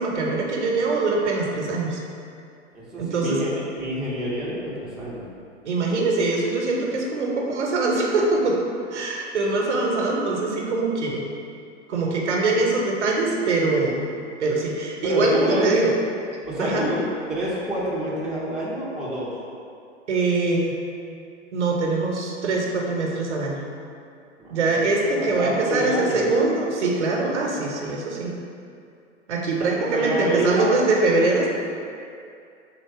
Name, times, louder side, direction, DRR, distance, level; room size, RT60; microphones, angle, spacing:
voice 1, 0.0-2.0 3.0-3.4 5.6-8.6 8.9-11.2 11.9-14.1 14.4-15.9 16.6-16.8 20.1-20.8 21.5-23.6 24.5-28.3 29.3-31.5, right 3 dB, 70° right, -1 dB, 0.9 m, -23 dB
voice 2, 2.7-3.5 3.8-5.3 15.0-15.7 16.4-19.3 24.4-24.9 25.2-26.5 29.6-30.8, equal, ahead, -8 dB, 0.5 m, -27 dB
3.8 x 2.8 x 4.7 m, 2.4 s
figure-of-eight pair, 110°, 36 cm